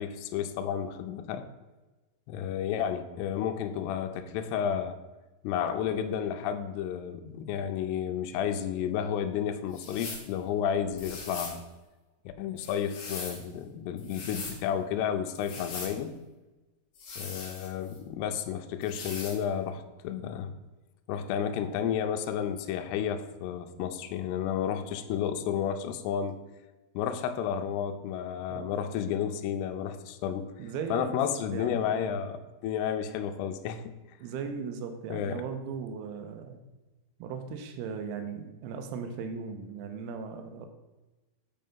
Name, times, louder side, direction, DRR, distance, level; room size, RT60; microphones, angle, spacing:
voice 1, 0.0-1.4 2.3-5.0 5.4-11.6 12.3-16.1 17.2-20.5 21.1-26.4 27.0-30.5 30.9-32.4 32.6-33.9 35.1-35.4, left 8 dB, 85° left, 7 dB, 2.7 m, -31 dB
sound 1, 9.7-10.3 11.0-11.6 12.6-13.4 14.0-14.6 15.4-16.0 16.9-18.0 18.8-19.4, left 4 dB, 50° left, 1.9 m, -41 dB
voice 2, 30.6-32.2 34.2-36.6 37.2-40.7, right 5 dB, 80° right, 7 dB, 2.6 m, -37 dB
7.6 x 5.5 x 5.4 m, 1.1 s
omnidirectional pair, 4.8 m